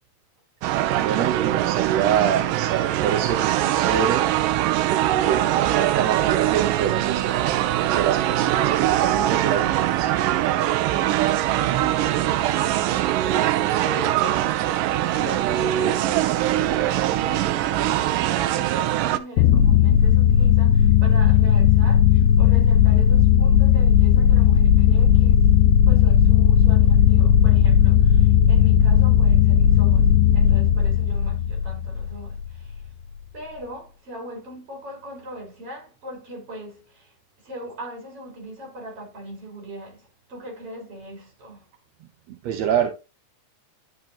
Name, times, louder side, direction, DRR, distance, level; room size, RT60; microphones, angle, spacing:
sound 1, 0.6-19.2, right 13 dB, 90° right, 2.4 m, -22 dB
voice 1, 1.0-4.3 4.9-7.5 7.9-10.1 42.3-42.9, right 8 dB, 70° right, 1.9 m, -26 dB
voice 2, 15.1-25.6 25.8-32.8 33.3-41.7, right 1 dB, 45° right, 5.0 m, -39 dB
sound 2, 19.4-32.2, left 9 dB, 80° left, 1.8 m, -16 dB
11.0 x 6.0 x 2.8 m
omnidirectional pair, 3.7 m